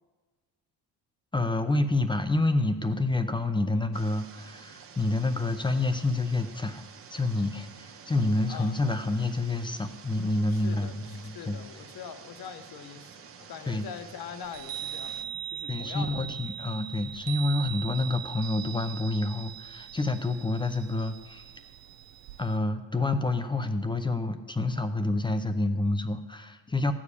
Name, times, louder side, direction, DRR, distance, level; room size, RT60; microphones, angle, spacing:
voice 1, 1.3-6.8 7.1-11.6 13.7-13.9 15.7-21.4 22.4-26.9, left 2 dB, 10° left, 8 dB, 0.6 m, -28 dB
sound 1, 3.9-15.2, right 6 dB, 30° right, 0.7 m, -49 dB
voice 2, 10.6-10.9 11.3-13.1 13.4-16.4, left 7 dB, 55° left, 8 dB, 1.2 m, -42 dB
Chime, 14.4-22.6, right 11 dB, 85° right, 0.6 m, -40 dB
14.5 x 5.0 x 8.3 m, 1.4 s
cardioid pair, 140°, 43 cm